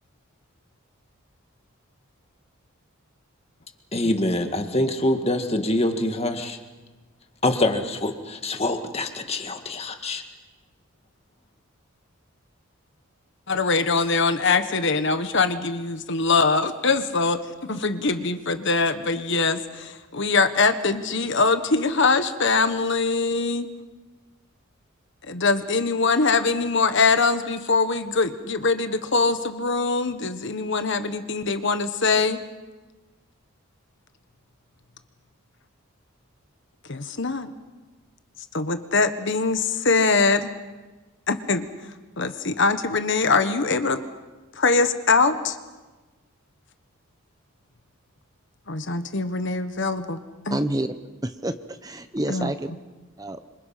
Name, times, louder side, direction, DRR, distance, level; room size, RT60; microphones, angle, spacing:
voice 1, 3.9-6.6 7.4-10.2, left 1 dB, 30° left, 5 dB, 2.0 m, -25 dB
voice 2, 13.5-23.7 25.3-32.4 36.9-37.5 38.5-40.5 41.3-41.7 42.2-44.0 44.5-45.6 48.7-50.6 52.3-52.5, left 4 dB, 55° left, 9 dB, 1.4 m, -23 dB
voice 3, 50.5-50.9 51.2-52.7 53.2-53.4, right 1 dB, 15° right, 9 dB, 0.8 m, -28 dB
28.0 x 26.0 x 5.9 m, 1.2 s
head